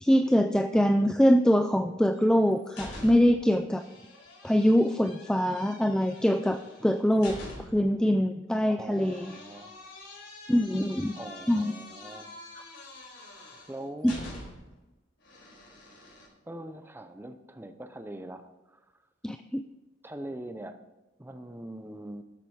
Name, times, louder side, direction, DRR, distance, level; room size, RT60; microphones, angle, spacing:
voice 1, 0.0-3.9 4.4-7.4 7.7-9.3 10.5-11.1 11.5-11.7 14.0-14.1 19.2-19.6, equal, 5° left, 8 dB, 0.3 m, -23 dB
sound 1, 2.1-3.5 3.8-7.9 8.9-14.8 15.2-16.3, left 1 dB, 75° left, 4.4 m, -46 dB
voice 2, 8.7-9.8 11.1-12.3 13.3-14.4 16.4-18.8 20.0-20.8 21.2-22.2, right 1 dB, 10° right, 8 dB, 0.8 m, -42 dB
12.5 x 7.6 x 4.8 m, 1.1 s
head